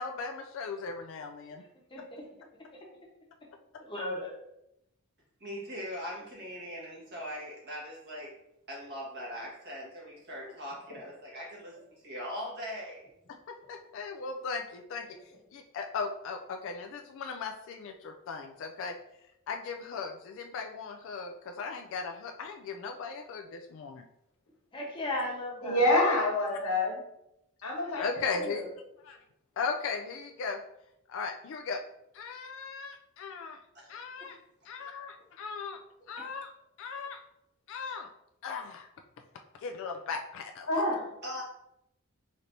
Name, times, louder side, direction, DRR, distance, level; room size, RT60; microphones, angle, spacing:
voice 1, 0.0-1.6 13.5-15.1 15.5-19.0 19.5-24.0 27.9-28.6 29.0-29.2 29.6-30.6 31.1-31.8 32.1-33.6 33.9-34.4 34.7-35.8 36.1-36.5 36.8-37.2 37.7-38.1 38.4-38.9 39.6-40.7, left 5 dB, 60° left, 4 dB, 0.3 m, -37 dB
voice 2, 1.9-2.2 3.8-4.3 24.7-25.9, left 1 dB, 25° left, -2 dB, 0.9 m, -36 dB
voice 3, 5.4-8.3 8.7-11.7 12.0-13.0 33.7-33.9 34.2-34.3 41.2-41.4, equal, 50° right, -4 dB, 1.4 m, -40 dB
voice 4, 25.6-27.0 27.6-28.1 28.4-28.6 40.7-41.1, left 1 dB, 85° left, -3 dB, 1.3 m, -26 dB
4.2 x 3.2 x 2.6 m, 0.83 s
head